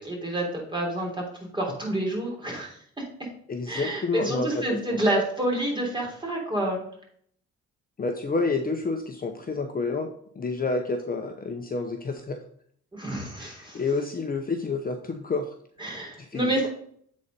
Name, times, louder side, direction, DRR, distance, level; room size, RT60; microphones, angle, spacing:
voice 1, 0.0-2.8 3.7-6.8 12.9-13.8 15.8-16.7, right 1 dB, 15° right, -1 dB, 3.5 m, -28 dB
voice 2, 3.5-4.8 8.0-10.1 10.3-12.4 13.4-15.5 16.2-16.7, left 3 dB, 30° left, 4 dB, 0.8 m, -29 dB
8.2 x 4.2 x 5.2 m, 0.63 s
cardioid pair, 90°, 30 cm